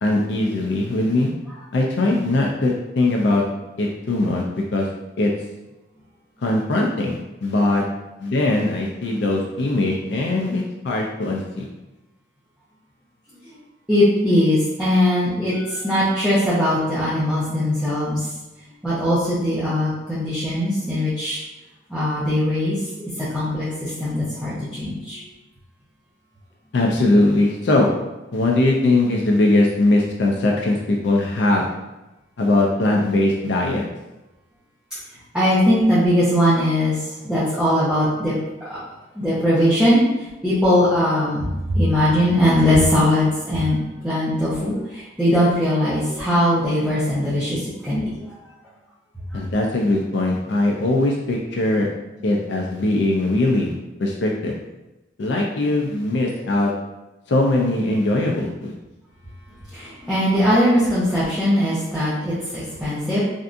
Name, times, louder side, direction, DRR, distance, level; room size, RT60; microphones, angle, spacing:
voice 1, 0.0-1.3 1.7-3.4 3.8-4.9 5.2-5.3 6.4-7.8 8.2-11.7 26.7-27.9 28.3-31.7 32.4-33.9 49.3-51.9 52.2-53.7 54.0-54.5 55.2-56.7 57.3-58.7, left 2 dB, 60° left, -1 dB, 0.4 m, -20 dB
voice 2, 13.9-18.3 18.8-21.4 21.9-22.9 23.2-25.2 35.3-38.3 38.6-38.8 39.1-43.8 44.0-48.3 49.3-49.4 52.2-52.3 59.7-63.2, left 1 dB, 5° right, -12 dB, 0.7 m, -20 dB
3.4 x 2.6 x 2.5 m, 1.0 s
head